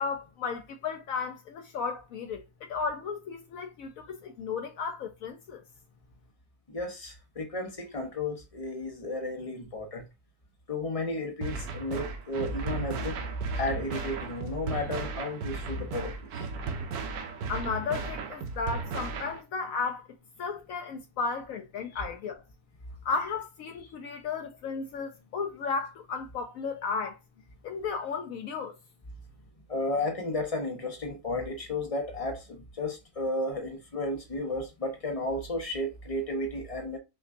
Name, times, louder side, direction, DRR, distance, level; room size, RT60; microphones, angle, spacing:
voice 1, 0.0-5.6 17.5-20.1 20.4-22.4 23.0-27.2 27.6-28.7, left 5 dB, 70° left, 0.9 m, -34 dB
voice 2, 6.7-10.1 10.7-13.2 13.5-16.5 21.9-22.0 29.7-37.0, left 1 dB, 35° left, 0.6 m, -33 dB
sound 1, 11.4-19.4, right 4 dB, 75° right, 1.2 m, -36 dB
5.6 x 2.3 x 2.5 m
omnidirectional pair, 1.6 m